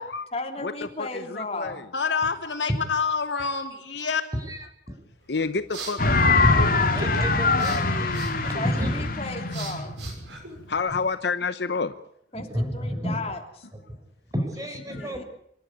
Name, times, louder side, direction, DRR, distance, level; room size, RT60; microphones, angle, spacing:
voice 1, 0.3-1.8 8.5-10.0 12.3-13.7 15.0-15.2, left 3 dB, 35° left, 4 dB, 3.1 m, -35 dB
voice 2, 1.0-1.8 5.3-6.7 7.9-8.1 8.3-8.5 10.5-11.9 14.9-15.1, left 4 dB, 70° left, 11 dB, 0.9 m, -30 dB
voice 3, 1.9-4.2, left 5 dB, 90° left, 5 dB, 3.1 m, -27 dB
voice 4, 4.4-5.0 6.3-8.9 12.3-13.2 14.3-15.2, equal, 20° right, 5 dB, 4.8 m, -31 dB
sound 1, 5.2-11.1, right 2 dB, 85° right, 6.3 m, -40 dB
sound 2, 6.0-10.9, left 3 dB, 55° left, 2.7 m, -23 dB
27.0 x 12.5 x 9.8 m, 0.71 s
head